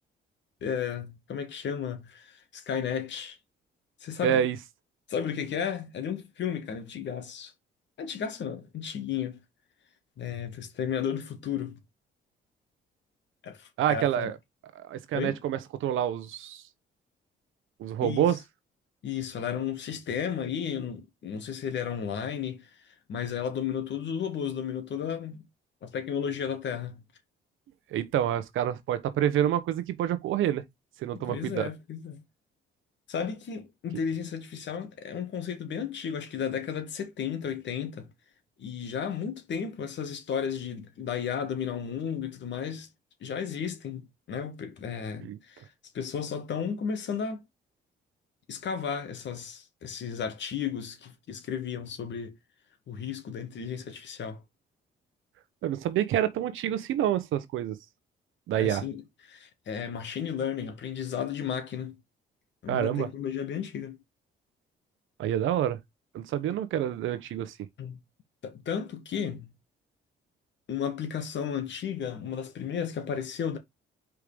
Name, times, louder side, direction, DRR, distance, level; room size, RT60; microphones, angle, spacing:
voice 1, 0.6-3.4 4.0-4.4 5.1-7.5 8.0-9.4 10.2-11.8 13.4-14.3 15.1-15.4 18.0-18.3 19.0-22.7 23.1-25.4 25.8-27.0 31.1-32.2 33.1-38.1 38.6-42.9 43.2-44.0 44.3-45.6 45.9-47.4 48.5-52.4 52.9-54.4 58.5-59.0 59.3-61.9 62.6-64.0 67.8-68.0 68.4-69.5 70.7-73.6, left 7 dB, 65° left, 2.2 m, -33 dB
voice 2, 4.2-4.6 13.8-14.4 14.8-16.6 17.8-18.4 27.9-30.6 31.0-31.7 45.2-45.4 55.6-57.8 58.5-58.8 62.7-63.1 65.2-65.8 66.1-67.5, right 10 dB, 80° right, 1.1 m, -27 dB
5.0 x 4.6 x 5.2 m
cardioid pair, 90°, 20 cm